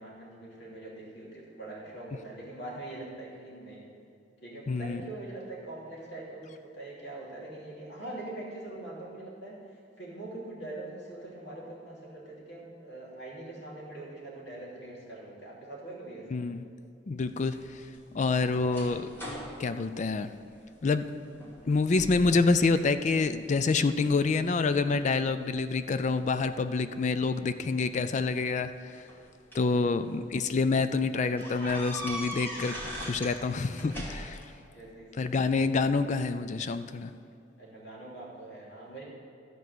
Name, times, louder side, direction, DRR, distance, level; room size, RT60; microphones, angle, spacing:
voice 1, 0.0-3.8 4.4-9.5 10.0-16.4 29.6-29.9 34.7-35.3 36.0-36.1 36.8-36.9 37.6-39.0, right 2 dB, 70° left, -4 dB, 2.8 m, -43 dB
voice 2, 4.7-5.0 16.3-16.6 17.1-17.8 18.1-19.1 19.6-20.3 20.8-21.1 21.7-29.0 29.5-34.4 35.2-37.1, left 4 dB, 40° left, 11 dB, 0.4 m, -27 dB
sound 1, 17.5-20.9 21.3-21.7 22.0-22.6 23.1-23.8 24.4-25.8 27.0-27.1 28.3-29.7 30.3-30.4 30.7-30.8 31.4-33.4 33.7-34.5, equal, 10° left, 2.4 m, -41 dB
13.5 x 4.7 x 7.9 m, 2.5 s
head